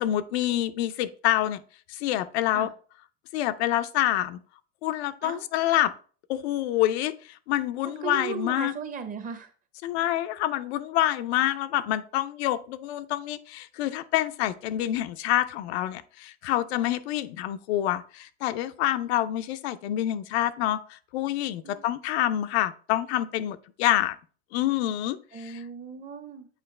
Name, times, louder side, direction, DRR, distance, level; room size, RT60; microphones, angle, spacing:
voice 1, 0.0-1.6 1.9-2.7 3.3-4.4 4.8-5.9 6.3-8.7 9.8-24.2 24.5-25.6, left 13 dB, 80° left, 11 dB, 0.6 m, -27 dB
voice 2, 7.8-9.5 21.6-21.9 25.3-26.5, right 6 dB, 25° right, 8 dB, 0.8 m, -37 dB
8.2 x 4.5 x 3.2 m, 0.41 s
supercardioid pair, 145°, 32 cm